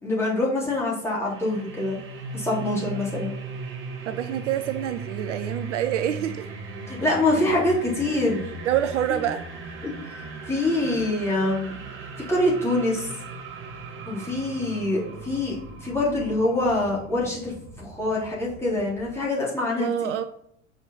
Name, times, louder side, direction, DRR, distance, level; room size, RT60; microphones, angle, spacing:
voice 1, 0.0-2.0 2.3-3.3 6.9-8.5 9.1-9.2 9.8-11.7 12.3-13.1 14.1-20.1, left 2 dB, 5° left, -6 dB, 3.5 m, -25 dB
sound 1, 1.3-19.2, right 3 dB, 30° right, 1.7 m, -38 dB
voice 2, 4.1-6.5 8.6-9.4 19.8-20.2, right 11 dB, 60° right, 10 dB, 0.6 m, -26 dB
6.3 x 5.0 x 5.6 m, 0.70 s
figure-of-eight pair, 75°, 40 cm